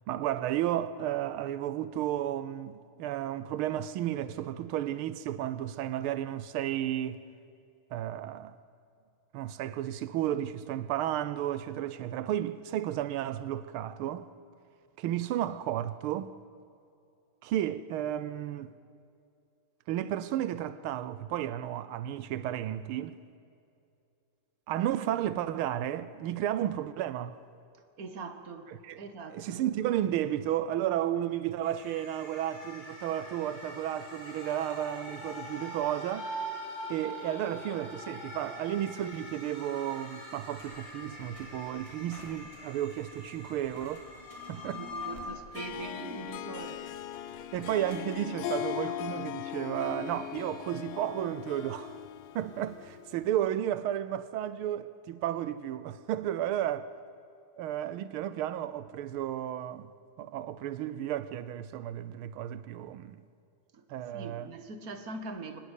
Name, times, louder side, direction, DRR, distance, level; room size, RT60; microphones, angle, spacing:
voice 1, 0.1-7.2 7.9-8.6 9.3-14.3 15.0-16.3 17.4-18.7 19.9-23.2 24.7-27.3 28.7-29.0 29.3-36.3 36.9-44.1 44.5-44.8 47.5-52.0 52.3-56.9 57.6-59.9 60.2-63.2 63.9-64.5, right 11 dB, 85° right, 1.6 m, -33 dB
voice 2, 28.0-28.7 29.0-29.6 44.7-46.9 63.7-63.9 64.1-65.6, right 3 dB, 45° right, 2.0 m, -42 dB
sound 1, 31.6-45.3, equal, 60° left, 5.3 m, -43 dB
sound 2, 40.5-48.2, equal, 15° left, 3.1 m, -55 dB
Harp, 45.5-53.2, left 11 dB, 90° left, 1.7 m, -39 dB
24.5 x 19.5 x 8.3 m
omnidirectional pair, 2.3 m